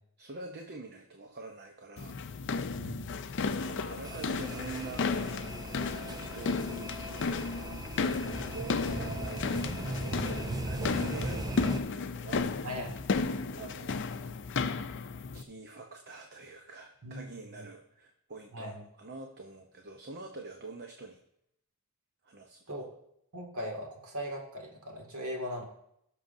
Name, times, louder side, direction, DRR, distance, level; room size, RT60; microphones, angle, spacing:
voice 1, 0.2-2.2 3.6-5.1 5.9-7.0 8.5-12.7 13.6-14.0 15.3-18.7 19.0-21.2 22.2-22.6, right 3 dB, 45° right, 4 dB, 0.8 m, -45 dB
sound 1, 2.0-15.4, left 4 dB, 55° left, 0.5 m, -34 dB
voice 2, 2.8-3.1 12.6-13.2 17.0-17.2 17.6-17.7 18.5-18.8 22.7-22.8 23.3-25.6, equal, 70° right, 0 dB, 2.3 m, -39 dB
sound 2, 4.0-11.8, right 1 dB, 15° right, 0.6 m, -38 dB
17.0 x 6.5 x 2.7 m, 0.75 s
head